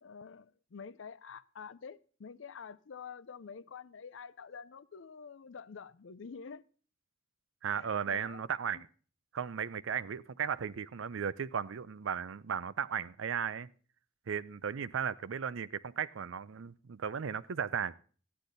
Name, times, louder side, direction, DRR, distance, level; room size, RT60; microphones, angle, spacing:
voice 1, 0.0-6.6 7.7-8.4 8.7-8.8, left 6 dB, 70° left, 0.5 m, -48 dB
voice 2, 7.6-8.9 9.3-13.7 14.3-18.0, right 7 dB, 75° right, 0.5 m, -36 dB
13.5 x 10.0 x 3.9 m
head